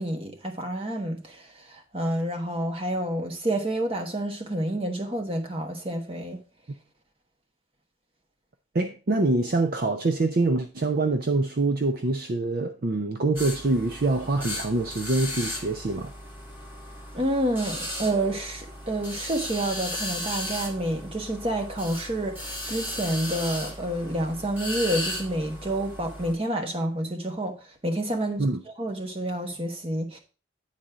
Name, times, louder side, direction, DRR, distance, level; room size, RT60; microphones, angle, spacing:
voice 1, 0.0-6.4 17.1-27.5 27.8-28.4 28.8-30.2, right 1 dB, 30° right, 1.2 m, -29 dB
voice 2, 8.7-16.1 28.4-28.6, right 2 dB, 50° right, 0.5 m, -25 dB
sound 1, 13.4-26.3, left 1 dB, 10° right, 1.8 m, -36 dB
9.0 x 4.2 x 4.9 m
head